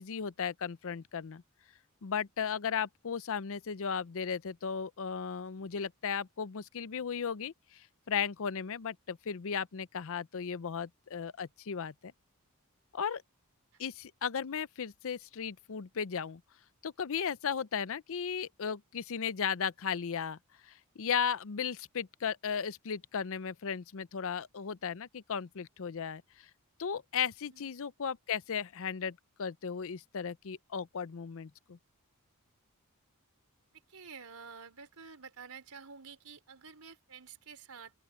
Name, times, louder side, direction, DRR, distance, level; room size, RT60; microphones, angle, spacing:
voice 1, 0.0-1.4 2.0-11.9 12.9-13.2 13.8-16.4 16.8-20.4 20.6-26.5 26.8-31.8, left 7 dB, 65° left, 0.6 m, -36 dB
voice 2, 33.9-37.9, right 5 dB, 80° right, 4.2 m, -50 dB
open air
head